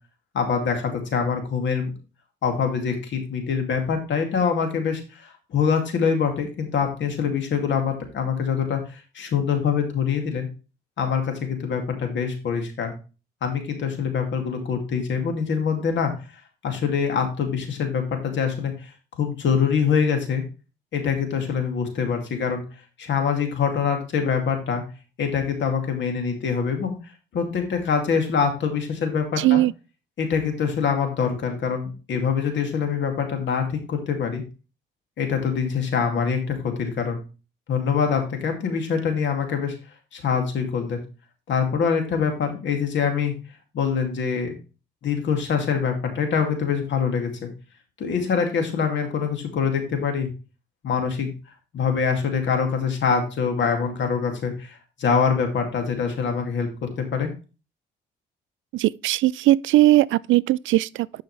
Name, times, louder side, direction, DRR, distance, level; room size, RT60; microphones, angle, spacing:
voice 1, 0.3-1.9 2.4-10.5 11.0-12.9 13.4-16.1 16.6-18.9 19.2-20.4 20.9-22.6 23.0-24.8 25.2-26.9 27.3-29.6 30.2-34.4 35.2-37.2 37.7-39.7 40.1-41.0 41.5-43.3 43.7-44.6 45.0-47.5 48.0-50.3 50.8-51.3 51.7-57.3, left 6 dB, 70° left, 2.5 m, -24 dB
voice 2, 29.4-29.7 58.7-61.2, right 16 dB, 75° right, 0.4 m, -19 dB
10.5 x 5.6 x 3.3 m
cardioid pair, 90°, 20 cm